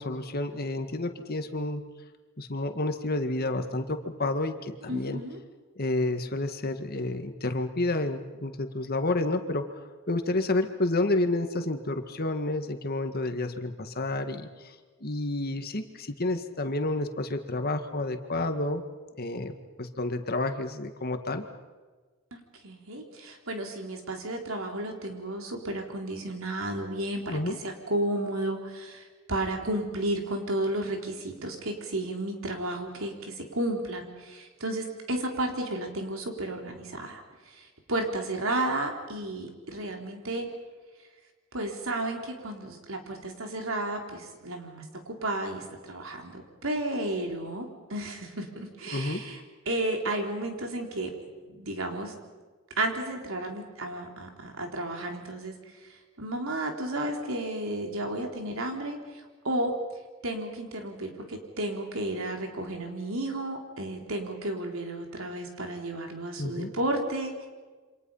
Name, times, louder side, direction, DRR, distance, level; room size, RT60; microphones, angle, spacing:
voice 1, 0.0-1.8 2.4-5.2 5.8-14.7 15.0-18.8 19.2-21.4 27.3-27.6 48.9-49.2 66.4-66.7, left 2 dB, 50° left, 7 dB, 1.9 m, -30 dB
voice 2, 4.9-5.4 22.3-40.5 41.5-49.4 49.7-51.1 51.4-52.1 52.8-55.5 55.8-55.9 56.2-59.7 60.2-67.5, right 1 dB, 80° right, 3 dB, 4.0 m, -33 dB
28.5 x 26.0 x 5.7 m, 1.4 s
head